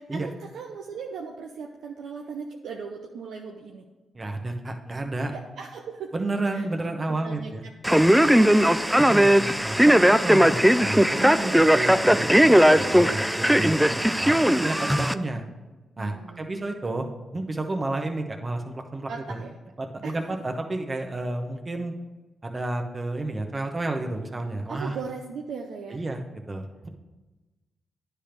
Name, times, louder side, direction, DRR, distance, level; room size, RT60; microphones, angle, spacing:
voice 1, 0.0-3.9 5.3-6.1 6.5-6.7 7.1-9.0 11.3-11.7 16.0-16.6 19.1-19.5 20.0-20.2 24.7-26.0, right 5 dB, 80° right, 1 dB, 0.6 m, -39 dB
voice 2, 4.1-5.3 6.1-7.6 9.0-15.4 16.0-17.1 17.3-19.1 19.8-21.9 22.4-24.9 25.9-26.2 26.5-26.9, right 2 dB, 35° right, 4 dB, 1.1 m, -31 dB
Male speech man speaking, 7.8-15.1, equal, 5° right, 0.4 m, -18 dB
9.9 x 3.5 x 5.9 m, 1.2 s
cardioid pair, 60°, 0 cm